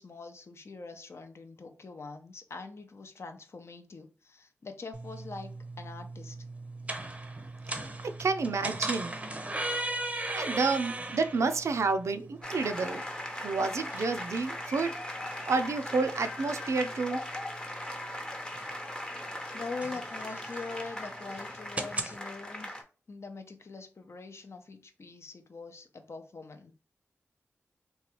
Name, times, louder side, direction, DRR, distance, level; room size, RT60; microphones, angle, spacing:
voice 1, 0.0-6.4 19.5-22.8 23.1-26.7, left 4 dB, 60° left, 0.6 m, -43 dB
sound 1, 4.9-22.2, right 2 dB, 25° right, 0.6 m, -39 dB
voice 2, 8.0-9.2 10.3-13.0 13.4-15.0 15.5-17.2, right 4 dB, 75° right, 0.4 m, -29 dB
sound 2, 12.4-22.8, left 1 dB, 15° left, 0.7 m, -39 dB
3.0 x 2.3 x 2.9 m
cardioid pair, 50°, 5 cm